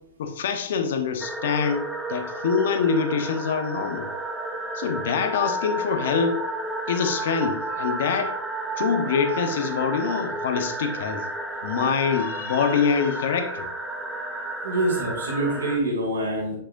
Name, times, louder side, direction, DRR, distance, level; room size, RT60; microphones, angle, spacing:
voice 1, 0.2-1.8 2.1-4.1 4.7-6.4 6.9-8.4 8.7-11.3 11.6-13.7, left 6 dB, 70° left, 7 dB, 0.9 m, -25 dB
sound 1, 1.2-15.8, right 1 dB, 10° right, 0.8 m, -31 dB
voice 2, 14.6-16.6, right 1 dB, 85° right, -1 dB, 2.7 m, -25 dB
6.5 x 6.0 x 2.6 m, 0.69 s
hypercardioid pair, 125°, 0 cm